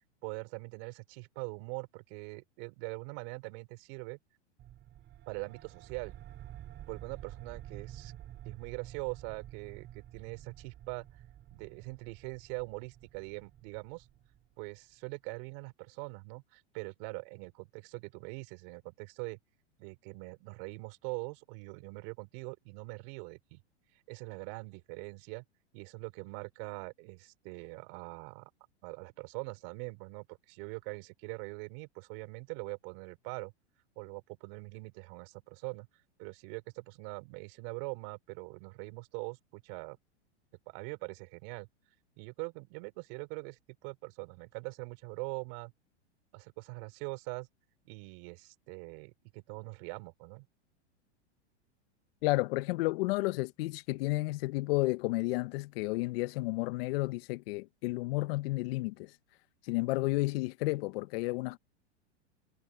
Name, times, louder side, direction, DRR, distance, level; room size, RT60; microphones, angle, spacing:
voice 1, 0.2-4.2 5.3-6.1 6.9-8.1 8.4-11.1 11.5-14.1 14.6-19.4 19.8-23.6 24.1-25.4 25.7-28.5 28.8-33.5 34.0-35.9 36.2-40.0 40.7-41.7 42.2-45.7 46.3-47.5 47.8-50.5, right 35 dB, 50° right, 4.2 m, -43 dB
sound 1, 4.6-14.8, right 12 dB, 35° right, 6.1 m, -50 dB
voice 2, 52.2-59.2 59.6-61.6, left 21 dB, 55° left, 0.9 m, -32 dB
hypercardioid pair, 120°, 35 cm